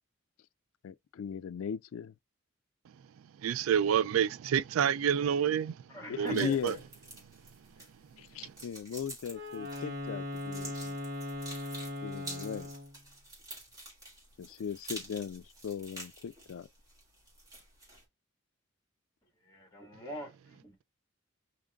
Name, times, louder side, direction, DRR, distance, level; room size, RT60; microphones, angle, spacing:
voice 1, 0.8-2.1 6.1-6.8 8.2-11.0 12.0-12.7 14.4-16.7, left 7 dB, 85° left, 0.3 m, -38 dB
voice 2, 3.4-5.7 6.2-6.7, right 8 dB, 85° right, 0.3 m, -28 dB
voice 3, 5.9-6.8 19.4-20.8, equal, 15° left, 1.7 m, -44 dB
sound 1, 6.3-18.0, right 1 dB, 20° right, 2.3 m, -49 dB
Wind instrument woodwind instrument, 9.3-13.0, left 1 dB, 65° right, 1.5 m, -39 dB
5.1 x 2.9 x 2.3 m
head